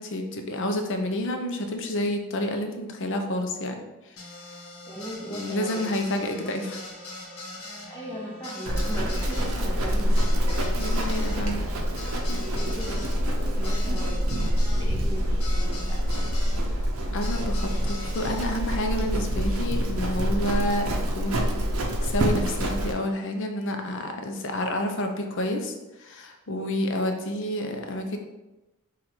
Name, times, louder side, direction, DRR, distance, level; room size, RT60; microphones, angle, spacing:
voice 1, 0.0-4.2 5.2-6.8 10.8-11.7 12.3-12.4 17.1-21.5 22.0-25.7 26.0-28.2, left 1 dB, 55° left, 4 dB, 0.5 m, -29 dB
sound 1, 4.2-16.6 17.2-18.5, left 2 dB, 75° left, 1.0 m, -41 dB
voice 2, 4.9-5.9 7.9-10.6 10.9-11.3 12.5-16.0, equal, 15° left, -4 dB, 0.9 m, -38 dB
Livestock farm animals working animals, 8.6-22.9, equal, 70° right, 0.6 m, -26 dB
4.0 x 2.5 x 4.3 m, 1.1 s
head